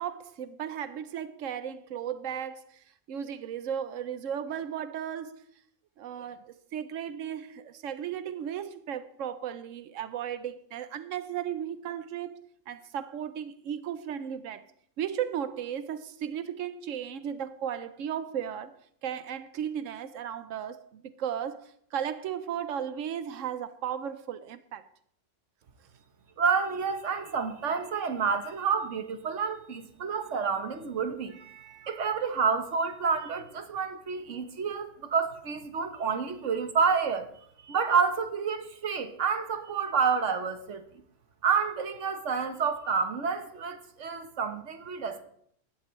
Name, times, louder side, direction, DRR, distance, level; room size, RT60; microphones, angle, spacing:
voice 1, 0.0-5.5 6.0-14.7 15.0-18.8 19.0-24.9, right 9 dB, 85° right, 1.0 m, -35 dB
voice 2, 26.4-37.3 37.7-40.8 41.4-45.2, right 5 dB, 70° right, 1.4 m, -29 dB
15.5 x 12.0 x 3.1 m
omnidirectional pair, 1.3 m